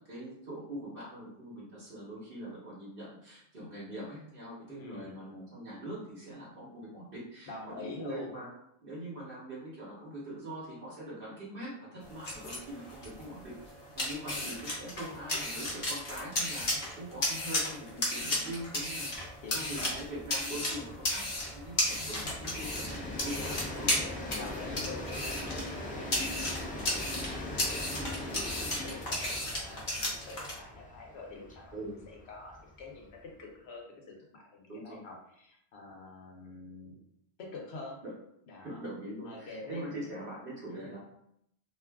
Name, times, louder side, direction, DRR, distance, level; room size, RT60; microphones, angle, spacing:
voice 1, 0.1-8.5 8.8-13.5 13.9-19.1 19.5-23.9 28.2-28.4 31.7-31.9 34.7-35.0 38.6-41.0, right 1 dB, 60° right, -7 dB, 1.0 m, -43 dB
voice 2, 4.7-5.2 7.5-8.4 14.2-14.5 16.7-17.0 18.9-19.1 19.4-20.0 22.0-22.4 24.3-37.0 37.4-38.0 38.5-38.9 39.2-40.0 40.7-41.0, left 3 dB, 90° left, -1 dB, 1.0 m, -47 dB
sound 1, 12.0-30.6, left 1 dB, 50° left, 0.9 m, -35 dB
Train, 15.2-15.3 15.6-15.7 16.0-33.4, left 1 dB, 15° left, 0.3 m, -42 dB
2.5 x 2.3 x 3.4 m, 0.74 s
omnidirectional pair, 1.1 m